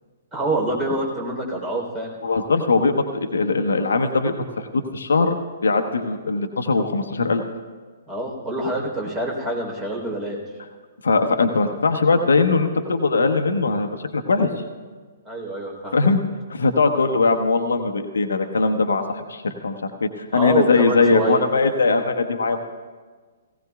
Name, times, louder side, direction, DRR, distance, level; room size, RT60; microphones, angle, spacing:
voice 1, 0.3-2.1 8.1-10.4 15.2-15.9 20.3-21.4, right 2 dB, 20° right, -1 dB, 3.5 m, -26 dB
voice 2, 2.2-5.3 5.6-7.4 11.0-14.5 15.9-16.2 16.5-22.6, left 3 dB, 70° left, 7 dB, 1.0 m, -20 dB
18.0 x 17.0 x 2.3 m, 1.5 s
figure-of-eight pair, 120°, 0 cm